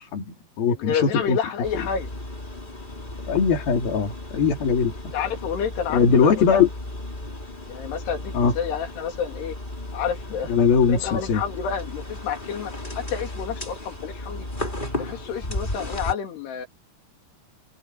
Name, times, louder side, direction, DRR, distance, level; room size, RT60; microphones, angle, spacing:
voice 1, 0.0-1.4 1.8-1.9 3.3-4.9 5.9-6.7 8.3-8.5 10.5-11.4, left 6 dB, 65° left, 5.2 m, -21 dB
voice 2, 0.8-2.1 5.1-6.6 7.7-9.5 9.9-14.5 15.0-16.7, left 7 dB, 90° left, 4.8 m, -29 dB
sound 1, 1.6-16.1, left 1 dB, 15° left, 2.8 m, -35 dB
omnidirectional pair, 4.6 m